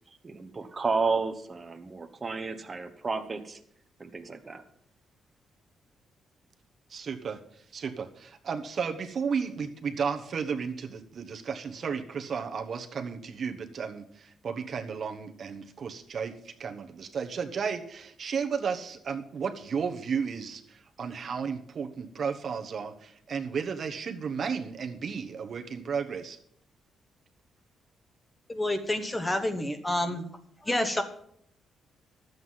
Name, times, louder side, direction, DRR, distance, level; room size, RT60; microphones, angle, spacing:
voice 1, 0.2-3.6 4.0-4.6, right 4 dB, 25° right, 7 dB, 1.0 m, -32 dB
voice 2, 6.9-26.4, right 6 dB, 50° right, 4 dB, 1.1 m, -33 dB
voice 3, 28.5-30.3 30.6-31.0, left 1 dB, 15° left, 7 dB, 1.2 m, -28 dB
12.0 x 8.0 x 5.7 m, 0.70 s
cardioid pair, 115°, 0 cm